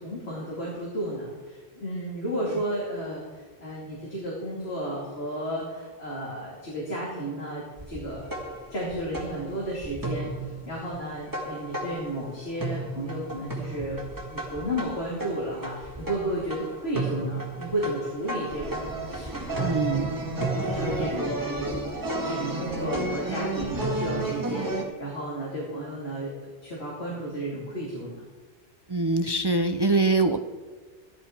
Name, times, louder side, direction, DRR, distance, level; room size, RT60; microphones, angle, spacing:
voice 1, 0.0-8.4 8.7-14.0 14.3-19.9 20.6-21.7 22.2-28.2, right 1 dB, 80° left, -5 dB, 2.9 m, -33 dB
sound 1, 7.8-12.3 12.6-24.8, right 2 dB, 20° right, 1.8 m, -32 dB
voice 2, 19.6-20.2 20.8-21.1 28.9-30.4, right 3 dB, 35° right, 7 dB, 0.4 m, -24 dB
14.5 x 11.0 x 4.4 m, 1.3 s
omnidirectional pair, 1.1 m